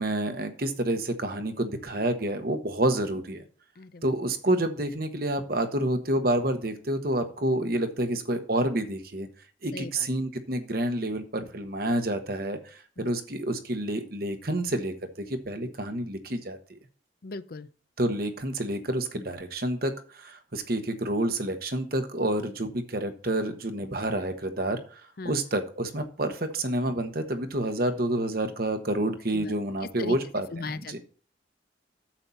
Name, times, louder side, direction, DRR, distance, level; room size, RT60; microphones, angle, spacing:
voice 1, 0.0-3.4 4.0-9.3 9.6-16.8 18.0-25.0 25.2-31.0, right 1 dB, 55° right, 1.3 m, -29 dB
voice 2, 3.8-4.1 9.7-10.1 13.0-13.1 17.2-17.7 25.2-25.3 29.3-30.2 30.5-31.0, left 3 dB, 55° left, 0.6 m, -38 dB
8.9 x 7.3 x 4.1 m
head